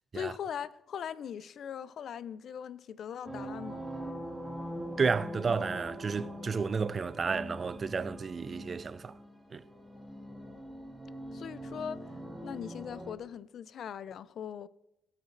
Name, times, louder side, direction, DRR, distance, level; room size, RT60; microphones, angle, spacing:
voice 1, 0.1-3.9 11.3-12.1 12.4-14.7, left 8 dB, 65° left, 0.4 m, -40 dB
sound 1, 3.2-13.1, equal, ahead, 1.9 m, -42 dB
voice 2, 5.0-9.2 9.5-9.6, right 5 dB, 40° right, 0.3 m, -32 dB
18.0 x 8.2 x 2.6 m
cardioid pair, 90°, 0 cm